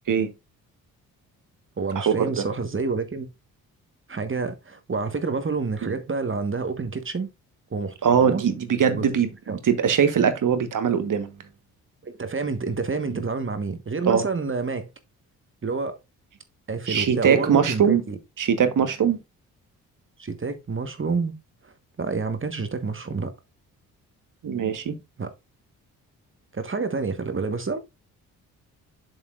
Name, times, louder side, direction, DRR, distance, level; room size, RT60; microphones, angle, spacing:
voice 1, 1.8-3.3 4.1-7.3 7.7-8.4 8.9-9.0 9.5-9.6 12.0-14.9 15.6-16.0 16.7-18.2 20.2-21.4 21.6-21.7 22.0-23.3 25.2-25.3 26.5-27.8, right 4 dB, 30° right, 1.4 m, -28 dB
voice 2, 8.0-11.3 14.1-14.2 16.9-18.0 18.4-19.2 24.4-24.9, right 7 dB, 50° right, 1.3 m, -21 dB
7.5 x 7.0 x 2.5 m
supercardioid pair, 55°, 39 cm